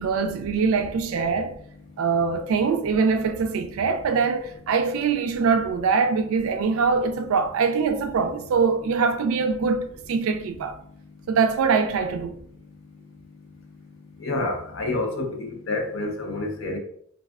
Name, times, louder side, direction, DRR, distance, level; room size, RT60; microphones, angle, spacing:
voice 1, 0.0-1.5 2.0-10.8 11.3-12.3, right 5 dB, 80° right, 0.3 m, -23 dB
voice 2, 14.2-16.8, left 2 dB, 65° left, 0.6 m, -28 dB
3.3 x 2.3 x 2.3 m
head